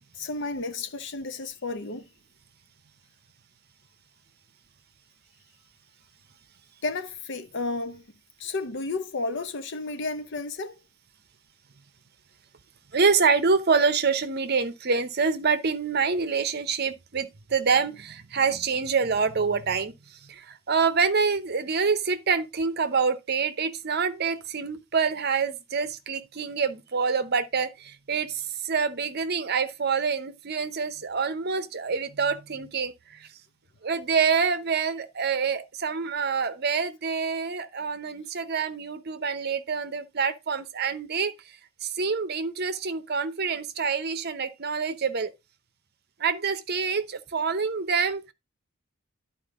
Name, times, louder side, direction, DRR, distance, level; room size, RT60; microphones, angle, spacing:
voice 1, 0.1-2.1 6.8-8.0 8.4-10.8, left 3 dB, 55° left, 0.8 m, -32 dB
voice 2, 12.9-33.3 33.8-45.3 46.2-48.3, right 5 dB, 50° right, 0.8 m, -26 dB
11.0 x 4.5 x 3.6 m
head